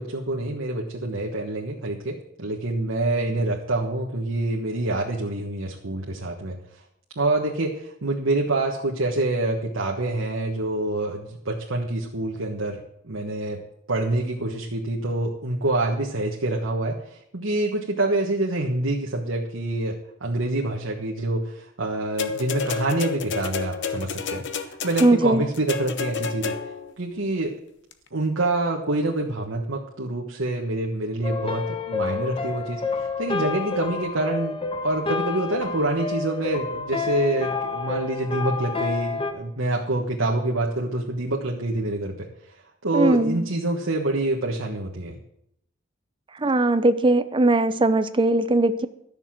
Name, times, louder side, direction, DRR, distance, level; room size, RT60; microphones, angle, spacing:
voice 1, 0.0-6.6 7.1-13.6 13.9-26.6 27.0-27.6 28.1-45.2, right 2 dB, 90° right, -1 dB, 1.4 m, -26 dB
sound 1, 22.2-26.9 27.9-28.0, left 5 dB, 65° left, 1.0 m, -30 dB
voice 2, 25.0-25.4 42.9-43.5 46.4-48.9, right 2 dB, 25° right, 12 dB, 0.6 m, -20 dB
sound 2, 31.2-39.3, left 4 dB, 25° left, 1.0 m, -29 dB
13.0 x 6.7 x 7.5 m, 0.74 s
head